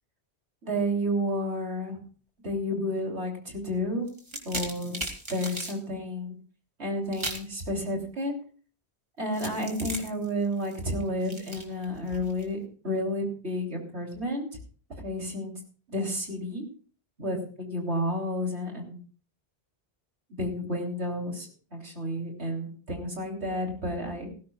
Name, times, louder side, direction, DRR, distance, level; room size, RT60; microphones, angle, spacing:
voice 1, 0.6-2.0 2.4-4.1 4.5-5.0 5.3-6.3 6.8-8.3 9.2-12.6 12.8-14.5 15.0-15.5 15.9-16.6 17.2-19.0 20.3-24.3, equal, 85° right, 1 dB, 3.5 m, -31 dB
sound 1, 4.1-5.8 7.1-7.5 9.3-12.5, right 1 dB, 25° right, 2.5 m, -37 dB
18.5 x 15.5 x 2.3 m, 0.40 s
omnidirectional pair, 1.1 m